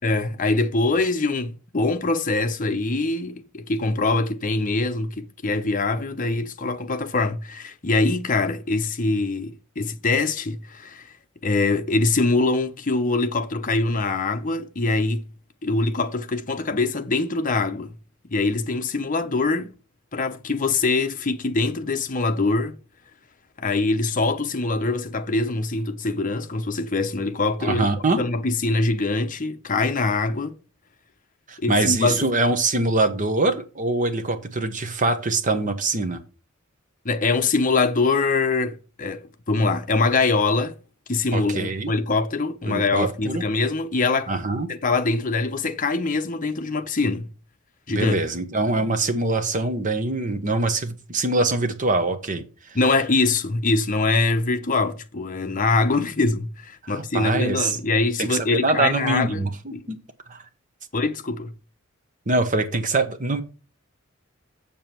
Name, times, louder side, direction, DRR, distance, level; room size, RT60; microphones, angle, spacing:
voice 1, 0.0-11.1 11.4-15.3 15.6-18.0 18.3-19.7 20.1-22.8 23.6-27.9 28.2-30.6 31.6-32.3 37.0-40.8 41.1-44.3 44.7-47.3 47.9-48.2 52.7-59.4 59.7-59.9 60.9-61.5, left 3 dB, 40° left, 0.8 m, -23 dB
voice 2, 27.6-28.2 31.5-36.2 41.3-41.9 42.7-43.4 44.3-44.7 47.9-52.4 56.8-57.8 58.2-60.0 60.3-60.4 62.3-63.4, right 2 dB, 40° right, 1.1 m, -23 dB
7.2 x 7.2 x 4.5 m
head